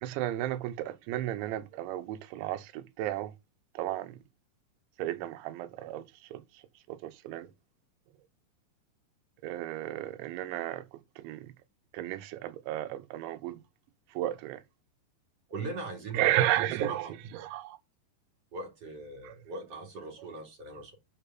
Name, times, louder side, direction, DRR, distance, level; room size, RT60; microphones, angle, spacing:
voice 1, 0.0-3.3 3.7-4.2 5.0-6.6 6.9-7.5 9.4-11.5 11.9-13.6 14.1-14.6 16.1-17.8 19.2-19.4, right 13 dB, 85° right, 3.2 m, -33 dB
voice 2, 15.5-16.4 16.8-17.1 18.5-20.9, right 3 dB, 40° right, 2.6 m, -40 dB
6.9 x 6.5 x 5.9 m
omnidirectional pair, 5.3 m